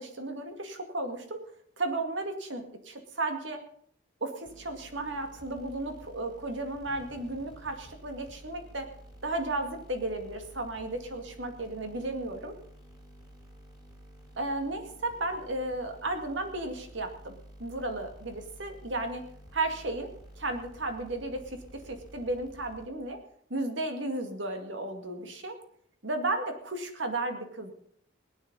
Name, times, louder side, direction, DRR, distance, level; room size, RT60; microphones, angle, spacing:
voice 1, 0.0-1.4 1.8-3.6 4.2-8.9 9.2-12.5 14.4-19.2 19.5-20.1 20.4-21.6 21.9-23.2 23.5-25.6 26.0-27.7, right 2 dB, 65° right, 5 dB, 2.1 m, -34 dB
sound 1, 4.4-23.2, right 1 dB, 20° right, 3.8 m, -51 dB
18.0 x 9.9 x 5.4 m, 0.63 s
head